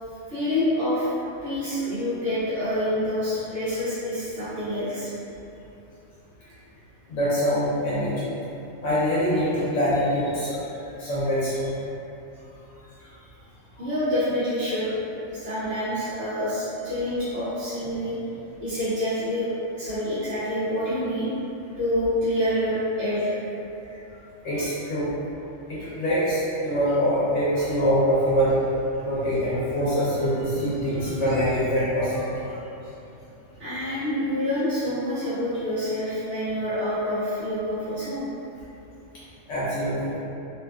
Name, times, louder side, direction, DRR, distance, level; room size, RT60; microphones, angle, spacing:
voice 1, 0.3-1.1 1.4-5.1 13.8-14.9 15.3-18.2 18.6-21.3 21.8-23.4 33.6-38.2, left 1 dB, 75° right, -14 dB, 1.1 m, -27 dB
voice 2, 7.1-8.3 8.8-11.7 23.9-24.0 24.4-25.1 25.7-28.6 29.0-32.6 39.5-40.2, equal, 80° left, -10 dB, 0.9 m, -24 dB
2.7 x 2.3 x 2.2 m, 2.9 s
omnidirectional pair, 1.2 m